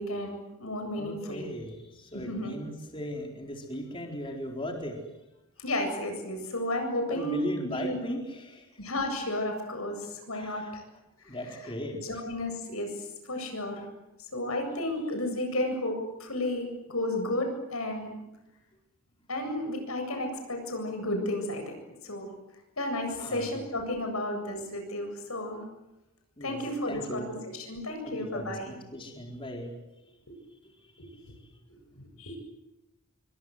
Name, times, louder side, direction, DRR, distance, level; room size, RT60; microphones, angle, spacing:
voice 1, 0.0-1.5 2.3-2.5 5.6-8.0 8.8-10.8 12.2-12.9 13.2-13.9 14.2-18.1 19.3-21.8 22.0-22.3 22.8-25.6 26.4-28.7 31.0-31.3 31.7-32.4, left 1 dB, 85° left, 5 dB, 7.9 m, -33 dB
voice 2, 0.9-5.1 7.1-8.7 10.3-10.7 11.3-12.0 23.2-23.6 26.4-26.6 26.9-27.3 28.0-29.8 30.6-30.7 31.1-31.5, equal, 25° left, 1 dB, 4.4 m, -38 dB
27.5 x 24.5 x 8.1 m, 0.97 s
head